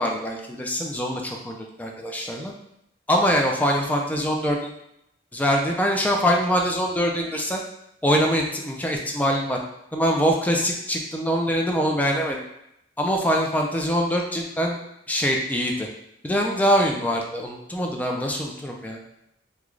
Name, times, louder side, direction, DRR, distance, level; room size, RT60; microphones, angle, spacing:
voice 1, 0.0-2.5 3.1-4.7 5.3-7.6 8.0-9.6 9.9-12.4 13.0-14.8 15.1-15.9 16.2-19.0, equal, 10° left, 1 dB, 0.4 m, -23 dB
3.1 x 2.3 x 3.7 m, 0.80 s
head